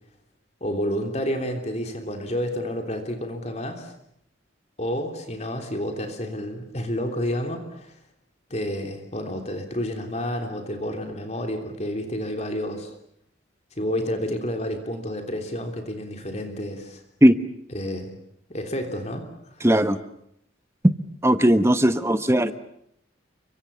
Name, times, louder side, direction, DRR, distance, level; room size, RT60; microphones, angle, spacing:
voice 1, 0.6-3.9 4.8-8.0 8.5-12.9 13.8-17.0 17.7-18.1 18.5-19.6, equal, 35° left, 5 dB, 3.4 m, -30 dB
voice 2, 19.6-20.0 21.2-22.5, equal, 15° right, 11 dB, 1.2 m, -18 dB
29.5 x 24.5 x 7.0 m, 0.73 s
head